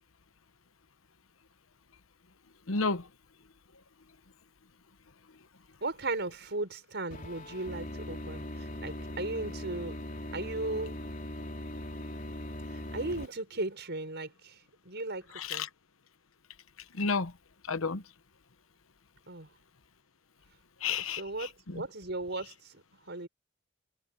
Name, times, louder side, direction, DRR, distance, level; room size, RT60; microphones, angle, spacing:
voice 1, 2.7-3.1 15.4-15.7 16.9-17.3 17.7-18.0 20.8-21.8, left 4 dB, 85° left, 1.1 m, -31 dB
voice 2, 5.8-10.0 10.3-11.0 12.7-14.6 14.8-15.7 19.3-19.5 20.9-23.3, right 2 dB, 55° right, 6.7 m, -37 dB
sound 1, 7.1-13.3, left 1 dB, 40° left, 3.7 m, -40 dB
head